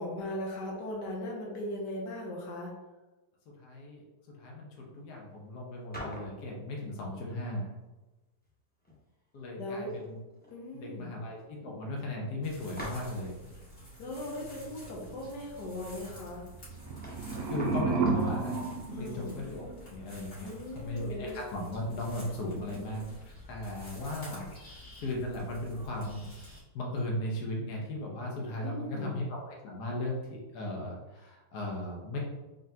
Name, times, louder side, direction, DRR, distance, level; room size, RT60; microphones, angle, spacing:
voice 1, 0.0-2.7 9.6-9.9 10.5-11.1 14.0-16.4 18.9-19.4 20.4-21.4 22.5-23.1 28.6-29.2, left 1 dB, 90° left, -2 dB, 1.4 m, -39 dB
voice 2, 3.6-4.0 4.4-7.7 9.3-10.2 10.7-13.3 17.1-20.5 20.7-26.3 26.7-32.2, left 1 dB, 70° left, -2 dB, 1.4 m, -37 dB
sound 1, 5.9-6.4 8.4-8.5 8.8-9.4 9.7-10.5 10.8-10.9 11.4-11.5 12.8-13.3 16.3-16.4 16.8-18.4, left 1 dB, 10° left, 0.4 m, -44 dB
sound 2, 12.4-26.6, equal, 50° left, 1.8 m, -49 dB
sound 3, 16.7-19.9, right 4 dB, 70° right, 0.8 m, -32 dB
3.9 x 3.6 x 2.7 m, 1.1 s
omnidirectional pair, 1.8 m